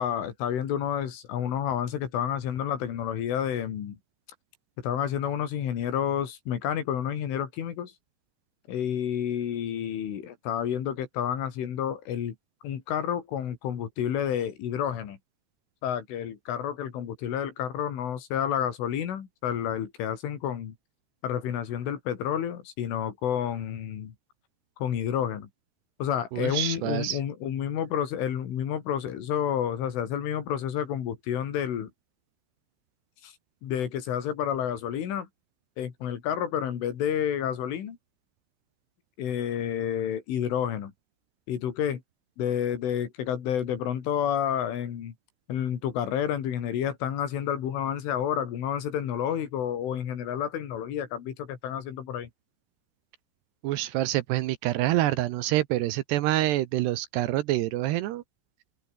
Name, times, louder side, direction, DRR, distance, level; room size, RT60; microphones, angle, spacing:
voice 1, 0.0-4.0 4.8-7.9 8.7-12.4 12.6-15.2 15.8-20.8 21.2-24.2 24.8-25.5 26.0-31.9 33.2-33.3 33.6-35.3 35.8-38.0 39.2-40.9 41.5-42.0 42.4-45.2 45.5-52.3, left 9 dB, 80° left, 5.5 m, -30 dB
voice 2, 26.3-27.2 53.6-58.2, right 15 dB, 75° right, 2.6 m, -26 dB
omnidirectional pair, 5.6 m